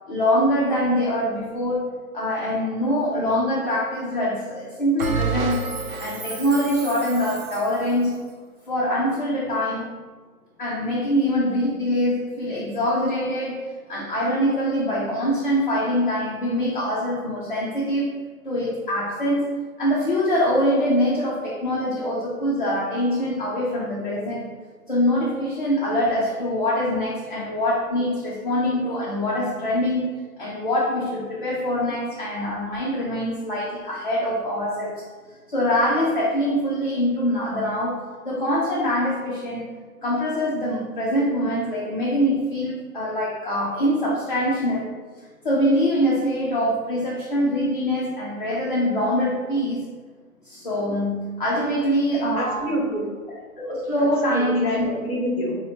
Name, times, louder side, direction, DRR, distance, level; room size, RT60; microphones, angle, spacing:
voice 1, 0.1-1.9 2.1-5.6 6.0-8.1 8.7-9.9 10.6-18.1 18.4-24.5 24.9-30.1 30.4-35.0 35.5-39.7 40.0-45.0 45.4-49.9 50.4-52.8 53.6-54.9, equal, 35° left, -6 dB, 0.5 m, -24 dB
Bell, 5.0-7.8, right 4 dB, 65° right, 0.8 m, -29 dB
voice 2, 52.4-53.1 54.0-55.6, equal, 20° left, -6 dB, 1.3 m, -27 dB
5.4 x 2.1 x 2.8 m, 1.4 s
hypercardioid pair, 165°, 44 cm